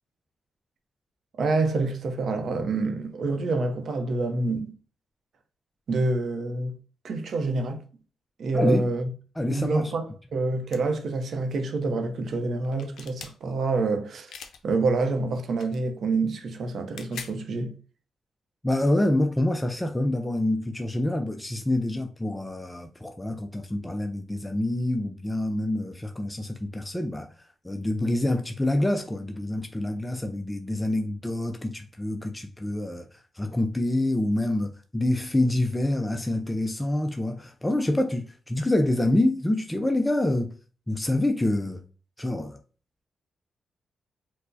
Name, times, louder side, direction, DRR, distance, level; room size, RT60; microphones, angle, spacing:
voice 1, 1.4-4.7 5.9-6.8 7.0-7.8 8.4-9.1 9.5-14.3 14.6-17.7, right 3 dB, 65° right, 0.6 m, -27 dB
voice 2, 8.5-8.9 9.4-9.9 18.6-27.3 27.6-40.5 40.9-41.8 42.2-42.6, left 1 dB, 10° left, 0.3 m, -26 dB
sound 1, 10.7-10.8 12.6-13.4 14.3-14.6 15.5-15.8 16.8-17.4, left 6 dB, 80° left, 0.5 m, -41 dB
4.4 x 2.0 x 2.6 m
cardioid pair, 90°, 0 cm